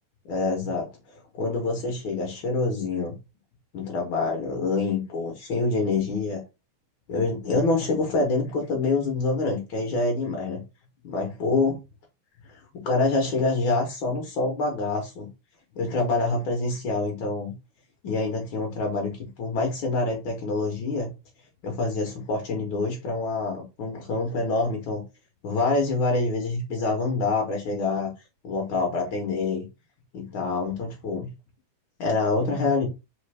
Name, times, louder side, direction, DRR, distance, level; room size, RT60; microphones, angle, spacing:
voice 1, 0.3-3.2 3.7-6.4 7.1-10.6 11.0-11.8 12.5-15.3 15.7-17.5 18.0-21.1 21.6-25.0 25.4-28.1 28.4-29.6 30.1-31.3 32.0-32.9, left 3 dB, 85° left, 1.1 m, -26 dB
4.3 x 3.3 x 3.2 m
omnidirectional pair, 3.6 m